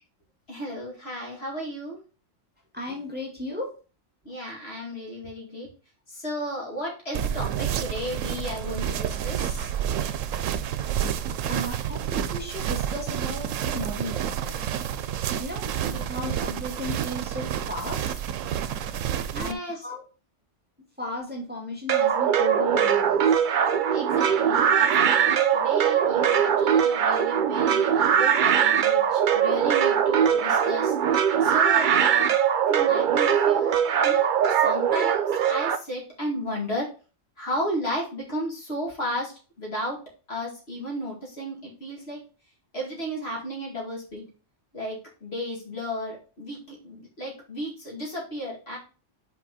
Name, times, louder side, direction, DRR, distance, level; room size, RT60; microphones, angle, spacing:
voice 1, 0.5-2.0 4.2-5.7 6.1-9.7 15.8-16.0 19.3-19.9 23.9-30.9 31.4-32.4 32.7-33.8 34.0-36.9 37.4-39.3 39.6-40.0 40.3-42.2 42.7-44.3 44.7-48.8, equal, 55° left, -2 dB, 2.4 m, -34 dB
voice 2, 2.7-3.7 11.5-14.7 15.4-18.1 19.3-20.0 21.0-23.2, left 1 dB, 10° right, -2 dB, 2.0 m, -35 dB
sound 1, 7.1-19.5, right 9 dB, 85° right, 1.0 m, -29 dB
sound 2, 21.9-35.8, right 8 dB, 55° right, 0.6 m, -21 dB
5.9 x 4.6 x 4.1 m, 0.35 s
omnidirectional pair, 1.3 m